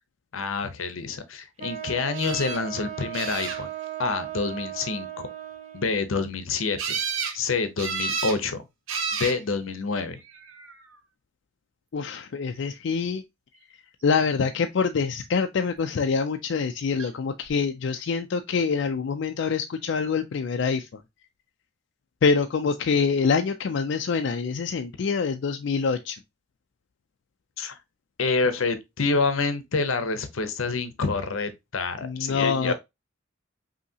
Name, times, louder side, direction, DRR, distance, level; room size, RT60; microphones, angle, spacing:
voice 1, 0.3-3.7 4.0-5.3 5.7-6.8 7.3-8.6 9.2-10.2 27.6-27.7 28.2-32.7, left 4 dB, 85° left, 0.7 m, -27 dB
Wind instrument woodwind instrument, 1.6-6.0, right 12 dB, 30° right, 0.8 m, -37 dB
sound 1, 2.1-2.6 3.1-3.9 6.8-7.4 7.8-8.4 8.9-9.4 10.3-10.8 17.0-17.1 17.4-17.5, right 5 dB, 80° right, 0.8 m, -31 dB
voice 2, 11.9-13.2 14.0-21.0 22.2-26.2 32.0-32.7, left 5 dB, 60° left, 0.4 m, -25 dB
5.4 x 2.8 x 2.7 m
head